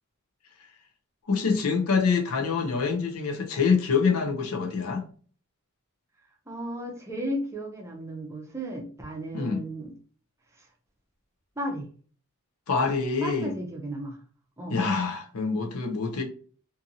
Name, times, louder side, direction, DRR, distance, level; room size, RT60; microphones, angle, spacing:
voice 1, 1.3-5.0 9.3-9.6 12.7-13.5 14.7-16.2, left 5 dB, 80° left, 0.6 m, -25 dB
voice 2, 6.5-9.9 10.6-10.7 11.6-11.9 13.2-14.2 14.6-14.8, right 1 dB, 15° right, 0.5 m, -34 dB
2.6 x 2.6 x 2.6 m
head